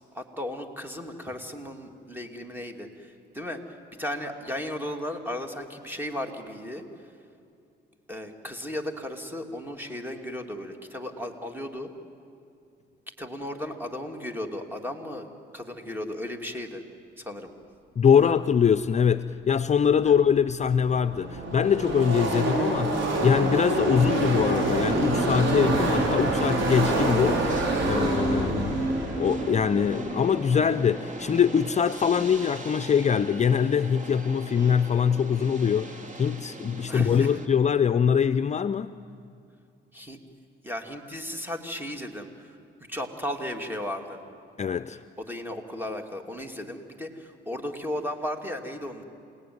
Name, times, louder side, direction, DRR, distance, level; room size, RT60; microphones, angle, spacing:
voice 1, 0.1-6.8 8.1-11.9 13.2-15.3 15.5-16.8 17.2-17.5 18.2-18.3 20.0-20.2 28.4-28.8 36.9-37.4 39.9-40.2 40.6-42.5 42.9-44.2 45.2-49.0, left 1 dB, 10° right, 5 dB, 2.7 m, -35 dB
voice 2, 18.0-27.4 27.8-28.8 29.2-38.9 44.6-45.0, left 7 dB, 35° left, 12 dB, 0.5 m, -23 dB
Car passing by / Race car auto racing, 20.7-31.0, right 2 dB, 70° right, 5.2 m, -26 dB
sound 1, 26.0-37.5, right 1 dB, 40° right, 2.5 m, -39 dB
28.0 x 18.5 x 9.6 m, 2.5 s
cardioid pair, 90°, 20 cm